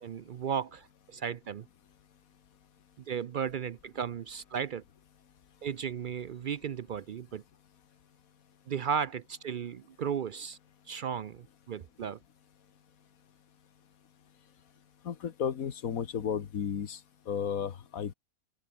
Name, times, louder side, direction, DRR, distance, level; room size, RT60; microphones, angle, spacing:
voice 1, 0.0-1.7 3.1-4.8 5.6-7.4 8.7-10.6 10.9-12.2, right 7 dB, 70° right, 0.4 m, -35 dB
voice 2, 15.1-17.0 17.3-18.1, left 8 dB, 75° left, 1.7 m, -33 dB
omnidirectional pair, 1.5 m